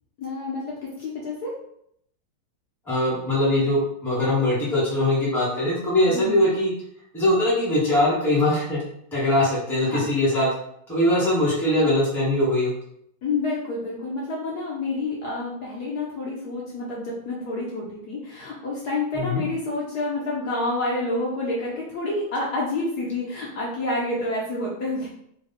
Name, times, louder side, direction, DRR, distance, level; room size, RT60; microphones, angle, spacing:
voice 1, 0.2-1.5 6.1-6.3 9.8-10.0 13.2-25.1, left 2 dB, 60° left, -4 dB, 1.2 m, -28 dB
voice 2, 2.9-6.7 7.1-8.8 9.1-10.5 10.9-12.7 19.1-19.4, left 1 dB, ahead, -6 dB, 0.9 m, -21 dB
4.0 x 2.3 x 4.1 m, 0.73 s
omnidirectional pair, 2.2 m